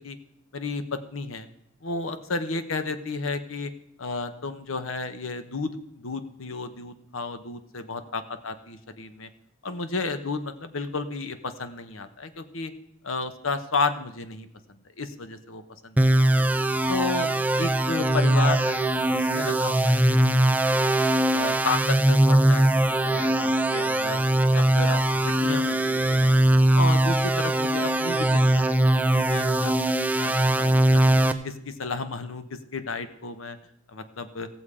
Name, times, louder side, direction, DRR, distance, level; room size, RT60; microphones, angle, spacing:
voice 1, 0.5-1.5 1.8-3.7 4.0-9.3 9.6-12.7 13.0-16.4 16.9-20.4 20.8-21.0 21.3-24.2 24.5-26.4 26.8-31.2 31.4-33.6 33.9-34.5, left 3 dB, 80° left, 10 dB, 0.9 m, -32 dB
sound 1, 16.0-31.3, right 1 dB, 10° right, 0.4 m, -21 dB
16.0 x 7.1 x 4.9 m, 0.78 s
head